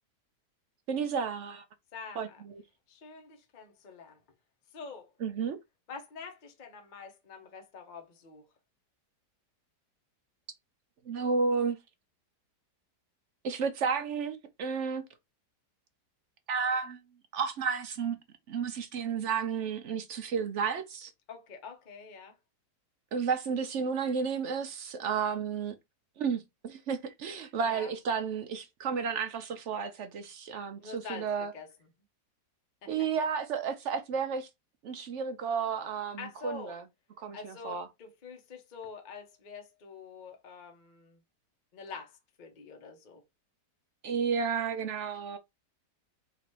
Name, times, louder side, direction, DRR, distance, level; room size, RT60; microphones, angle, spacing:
voice 1, 0.9-1.6 2.2-2.6 5.2-5.6 11.1-11.8 13.4-15.0 16.5-17.0 17.3-18.2 18.5-21.1 23.1-25.8 26.2-31.5 32.9-34.5 34.8-36.8 37.2-37.9 44.0-45.4, right 6 dB, 65° right, 0.7 m, -32 dB
voice 2, 1.9-2.4 2.9-4.2 4.7-5.1 5.9-8.4 21.3-22.3 27.6-27.9 30.8-31.7 32.8-32.9 36.2-36.8 37.3-41.2 41.7-43.2, left 5 dB, 35° left, 0.8 m, -46 dB
3.9 x 2.5 x 4.4 m
omnidirectional pair, 1.8 m